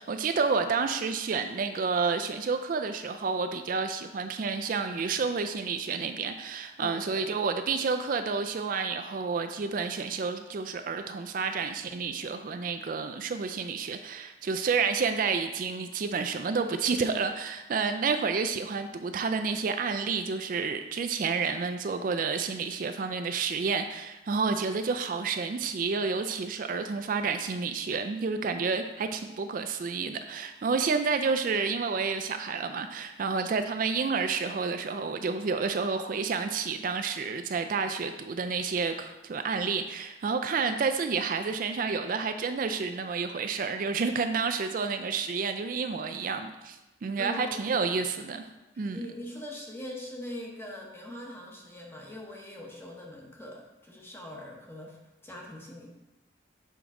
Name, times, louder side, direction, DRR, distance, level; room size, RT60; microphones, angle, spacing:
voice 1, 0.0-48.4 48.8-49.0, right 5 dB, 45° right, 8 dB, 0.3 m, -30 dB
voice 2, 6.8-7.3 47.2-48.0 48.7-55.9, left 1 dB, 15° left, -1 dB, 0.9 m, -42 dB
7.0 x 4.6 x 3.7 m, 1.0 s
head